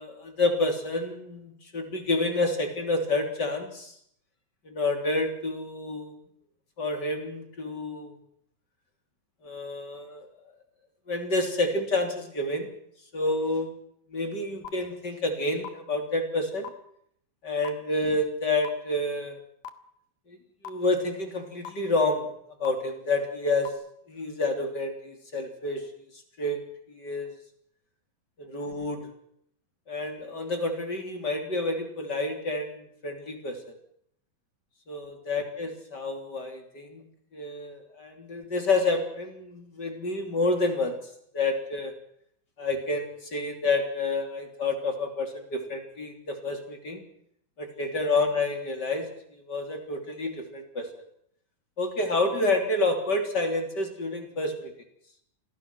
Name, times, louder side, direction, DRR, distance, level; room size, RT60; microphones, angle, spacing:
voice 1, 0.0-3.9 4.7-6.2 6.8-8.2 9.4-10.3 11.1-12.7 13.1-13.7 14.1-16.7 17.4-19.4 20.3-20.4 20.6-22.3 22.6-23.7 24.1-25.8 26.1-26.6 26.9-27.4 28.4-29.1 29.9-33.7 34.9-37.1 37.3-41.0 41.3-41.9 42.6-47.0 47.6-50.9 51.8-54.7, left 2 dB, 30° left, 4 dB, 3.7 m, -29 dB
sound 1, 14.6-14.7 15.6-15.7 16.6-16.7 17.6-17.7 18.6-18.7 19.6-19.7 20.6-20.7 21.6-21.7 22.6-22.7 23.6-23.7, left 8 dB, 80° left, 3.1 m, -36 dB
28.0 x 22.0 x 6.1 m, 0.70 s
omnidirectional pair, 3.9 m